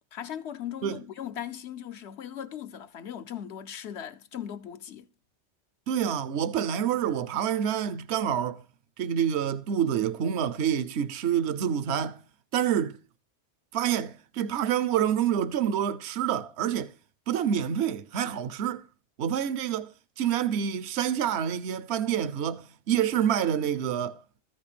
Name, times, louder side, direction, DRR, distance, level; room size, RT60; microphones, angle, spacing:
voice 1, 0.1-5.1, left 9 dB, 75° left, 1.0 m, -38 dB
voice 2, 5.9-8.6 9.0-12.2 12.5-13.0 13.7-16.9 17.3-18.9 19.2-19.9 20.2-24.2, right 9 dB, 75° right, 1.0 m, -27 dB
14.0 x 5.7 x 6.9 m
omnidirectional pair, 1.1 m